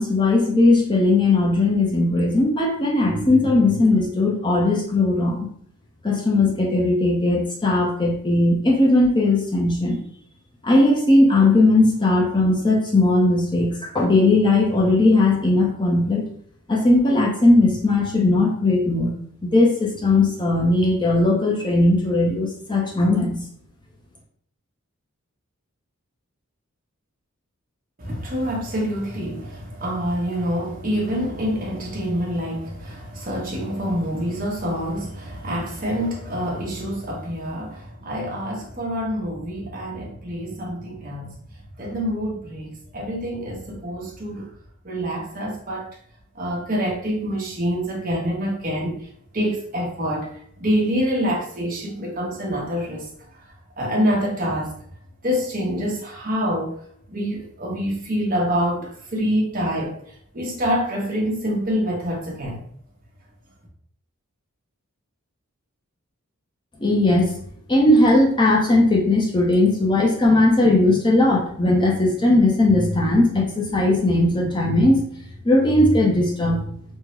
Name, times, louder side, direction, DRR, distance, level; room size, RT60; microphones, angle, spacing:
voice 1, 0.0-5.5 6.0-10.0 10.6-16.2 16.7-19.1 19.4-23.4 66.8-67.3 67.7-75.1 75.4-76.6, left 2 dB, 20° left, 0.5 m, -18 dB
voice 2, 28.0-41.4 41.8-44.5 44.8-45.9 46.3-49.1 49.3-54.8 55.2-56.8 57.1-62.6, equal, 40° right, 0.9 m, -26 dB
3.6 x 2.0 x 3.0 m
head